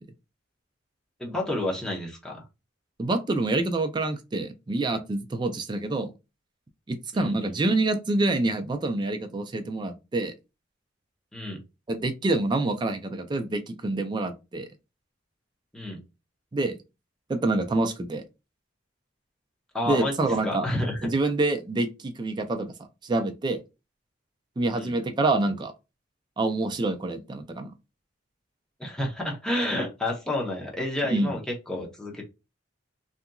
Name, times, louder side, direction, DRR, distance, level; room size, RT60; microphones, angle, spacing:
voice 1, 1.2-2.4 7.1-7.3 11.3-11.6 15.7-16.0 19.7-20.1 20.4-21.1 24.7-24.9 28.8-31.4 31.7-32.2, left 1 dB, 5° left, 0.7 m, -30 dB
voice 2, 3.0-6.1 6.9-10.3 11.9-14.7 16.5-16.7 17.3-18.2 19.9-20.7 21.0-22.7 23.0-23.6 24.6-25.7 26.4-27.7 31.1-31.3, right 2 dB, 25° right, 0.3 m, -26 dB
2.8 x 2.4 x 2.2 m
head